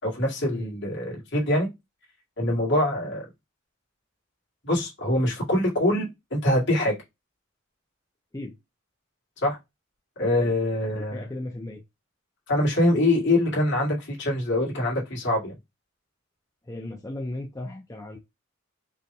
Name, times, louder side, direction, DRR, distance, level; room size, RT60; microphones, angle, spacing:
voice 1, 0.0-1.7 2.4-3.2 4.6-6.9 9.4-9.6 10.2-11.2 12.5-15.5, left 1 dB, 60° left, 2.3 m, -24 dB
voice 2, 10.9-11.8 16.6-18.2, left 1 dB, 15° left, 0.7 m, -36 dB
5.1 x 3.3 x 2.3 m
head